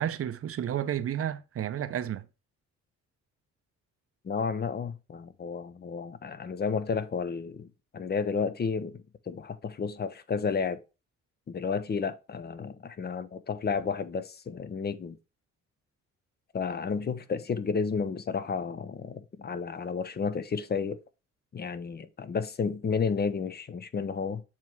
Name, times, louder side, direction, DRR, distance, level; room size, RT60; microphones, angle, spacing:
voice 1, 0.0-2.3, right 10 dB, 50° right, 0.7 m, -31 dB
voice 2, 4.2-7.7 7.9-10.8 11.5-15.2 16.5-21.0 21.5-24.4, left 5 dB, 35° left, 0.7 m, -32 dB
7.3 x 3.0 x 4.5 m
cardioid pair, 90°, 30 cm